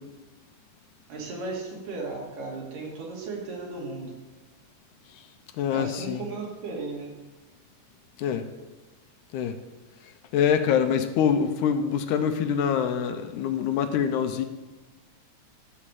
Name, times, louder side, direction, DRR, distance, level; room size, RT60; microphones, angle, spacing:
voice 1, 1.1-4.1 5.7-7.1, right 3 dB, 85° right, -2 dB, 3.8 m, -35 dB
voice 2, 5.6-6.2 8.2-8.4 9.3-9.6 10.3-14.5, left 8 dB, 80° left, 8 dB, 2.0 m, -25 dB
11.5 x 4.7 x 7.4 m, 1.2 s
omnidirectional pair, 3.7 m